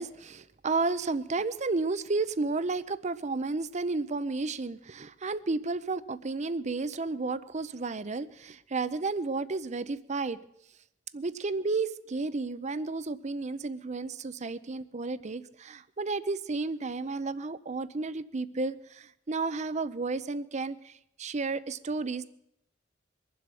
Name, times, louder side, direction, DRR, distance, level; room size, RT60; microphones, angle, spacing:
voice 1, 0.0-10.4 11.1-22.3, right 3 dB, 40° right, 15 dB, 0.6 m, -32 dB
23.0 x 7.7 x 6.9 m, 0.79 s
head